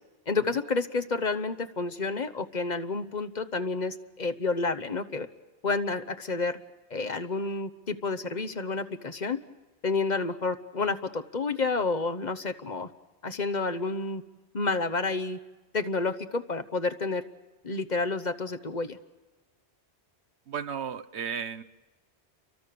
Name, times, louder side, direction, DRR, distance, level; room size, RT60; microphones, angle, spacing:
voice 1, 0.3-5.3 5.6-6.6 6.9-9.4 9.8-12.9 13.2-14.2 14.5-15.4 15.7-17.2 17.6-19.0, left 3 dB, 45° left, 8 dB, 1.1 m, -30 dB
voice 2, 20.5-21.6, right 7 dB, 80° right, 10 dB, 1.3 m, -34 dB
30.0 x 24.0 x 6.8 m, 1.2 s
omnidirectional pair, 1.1 m